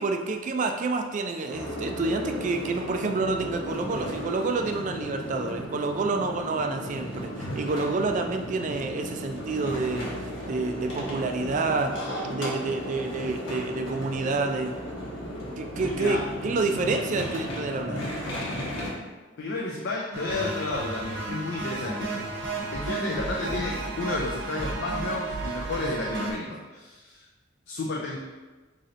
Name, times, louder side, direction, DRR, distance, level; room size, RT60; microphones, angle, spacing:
voice 1, 0.0-11.9 12.2-14.7 15.6-18.1, right 3 dB, 40° right, 5 dB, 0.3 m, -28 dB
sound 1, 1.5-18.9, equal, 85° left, 1.0 m, -35 dB
voice 2, 15.9-16.2 19.4-22.1 22.7-27.3 27.7-28.2, left 3 dB, 60° left, -2 dB, 0.4 m, -32 dB
sound 2, 20.1-26.3, right 3 dB, 60° right, 0.7 m, -32 dB
3.1 x 2.7 x 3.8 m, 1.3 s
head